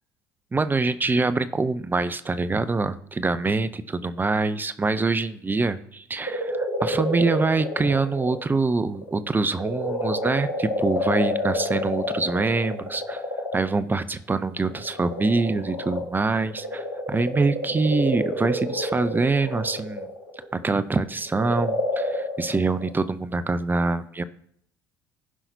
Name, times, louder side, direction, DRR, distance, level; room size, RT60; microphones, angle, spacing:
voice 1, 0.5-13.2 13.5-20.1 20.5-24.2, right 3 dB, 20° right, 13 dB, 0.5 m, -25 dB
sound 1, 6.3-8.4 8.9-13.8 14.6-20.7 21.3-22.9, left 1 dB, 85° left, 1.6 m, -29 dB
16.0 x 5.7 x 2.7 m, 0.66 s
figure-of-eight pair, 55°, 10 cm